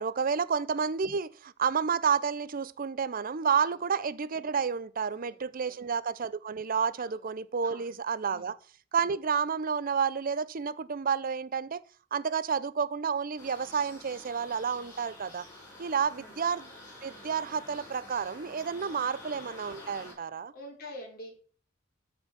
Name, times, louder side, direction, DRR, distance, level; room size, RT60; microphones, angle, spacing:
voice 1, 0.0-8.6 8.9-11.8 12.1-15.4 15.8-16.7 17.0-20.5, right 6 dB, 45° right, 0.6 m, -30 dB
voice 2, 5.1-5.9 7.0-7.3 7.6-7.9 8.3-8.5 16.2-16.4 19.0-19.1 20.5-21.4, left 1 dB, 50° left, 3.8 m, -47 dB
sound 1, 13.4-20.1, left 1 dB, 20° left, 5.7 m, -48 dB
13.5 x 4.6 x 5.8 m
head